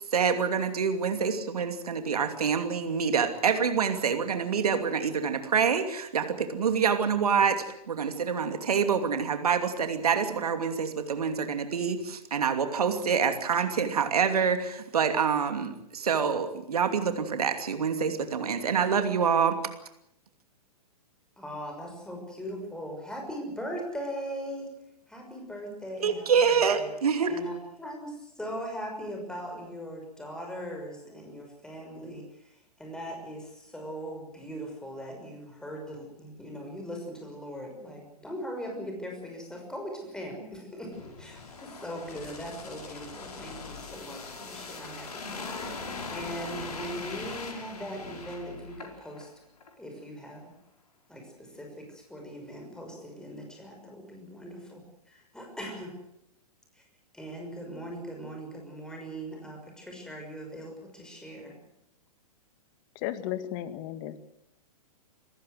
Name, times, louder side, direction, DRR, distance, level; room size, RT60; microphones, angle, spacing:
voice 1, 0.1-19.6 26.0-27.3, right 6 dB, 75° right, 7 dB, 2.8 m, -26 dB
voice 2, 21.4-24.7 25.1-26.9 27.3-49.3 49.8-50.4 51.1-54.8 55.1-55.9 56.7-56.8 57.1-61.6, equal, 5° left, 1 dB, 6.1 m, -40 dB
sound 1, 40.9-49.3 49.6-49.7, left 4 dB, 75° left, 4.6 m, -41 dB
voice 3, 63.0-64.2, left 12 dB, 40° left, 12 dB, 2.0 m, -34 dB
28.0 x 15.0 x 7.9 m, 0.77 s
hypercardioid pair, 115°, 20 cm